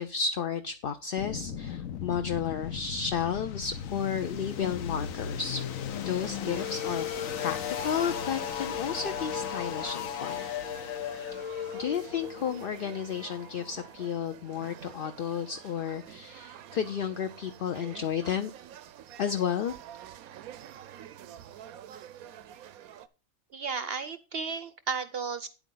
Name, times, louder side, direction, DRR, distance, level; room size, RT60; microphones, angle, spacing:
voice 1, 0.0-5.6 6.0-7.0 7.4-10.4 11.7-18.5 19.2-19.8, left 7 dB, 55° left, 8 dB, 0.6 m, -32 dB
sound 1, 1.2-14.0, left 8 dB, 75° left, 1.2 m, -36 dB
sound 2, 6.5-23.1, right 10 dB, 90° right, 1.1 m, -48 dB
voice 2, 23.5-25.5, right 5 dB, 60° right, 12 dB, 0.7 m, -34 dB
9.4 x 8.2 x 3.8 m, 0.32 s
omnidirectional pair, 1.5 m